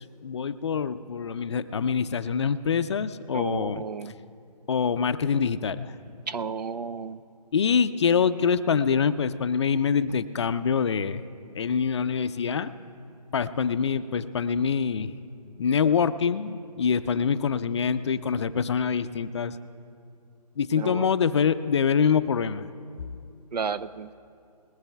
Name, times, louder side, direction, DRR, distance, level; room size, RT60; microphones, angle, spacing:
voice 1, 0.2-3.8 4.7-5.9 7.5-11.2 11.5-12.7 13.3-15.1 15.6-19.6 20.6-22.7, left 6 dB, 45° left, 12 dB, 0.5 m, -25 dB
voice 2, 3.3-4.1 6.3-7.2 20.7-21.1 23.5-24.1, right 5 dB, 85° right, 14 dB, 0.6 m, -32 dB
21.0 x 19.0 x 2.3 m, 2.4 s
hypercardioid pair, 155°, 21 cm